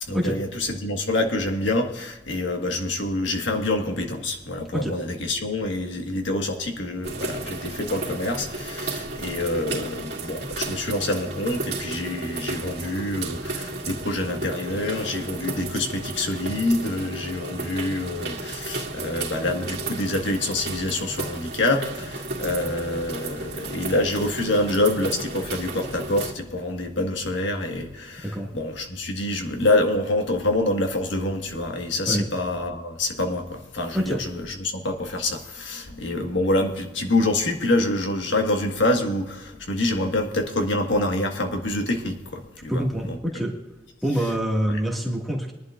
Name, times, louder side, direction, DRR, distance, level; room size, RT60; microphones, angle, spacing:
voice 1, 0.0-43.2 44.7-44.8, left 2 dB, 85° left, 3 dB, 1.6 m, -26 dB
sound 1, 7.0-26.3, right 2 dB, 60° right, 2.4 m, -33 dB
voice 2, 42.7-43.5 44.0-45.5, equal, ahead, -1 dB, 1.9 m, -25 dB
22.0 x 11.0 x 2.5 m, 1.0 s
head